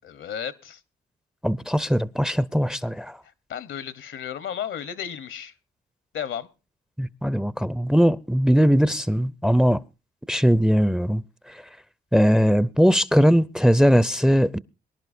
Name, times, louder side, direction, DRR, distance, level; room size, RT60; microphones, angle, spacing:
voice 1, 0.0-0.8 3.5-5.5 6.1-6.5, left 9 dB, 70° left, 1.1 m, -33 dB
voice 2, 1.4-3.2 7.0-9.8 10.3-11.2 11.5-11.6 12.1-14.6, equal, 5° right, 0.6 m, -20 dB
23.5 x 11.0 x 2.6 m
supercardioid pair, 55°, 21 cm